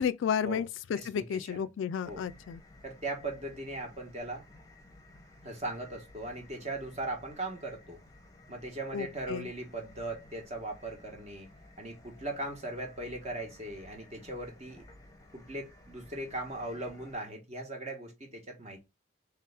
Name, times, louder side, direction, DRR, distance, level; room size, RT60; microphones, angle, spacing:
voice 1, 0.0-2.6 8.9-9.5, left 7 dB, 70° left, 0.3 m, -32 dB
voice 2, 0.9-1.7 2.0-2.2 2.8-4.4 5.4-8.0 8.5-11.5 11.8-14.9 15.3-18.8, right 2 dB, 35° right, 1.1 m, -39 dB
sound 1, 2.0-17.2, left 1 dB, 15° left, 0.8 m, -55 dB
3.4 x 3.3 x 3.3 m
head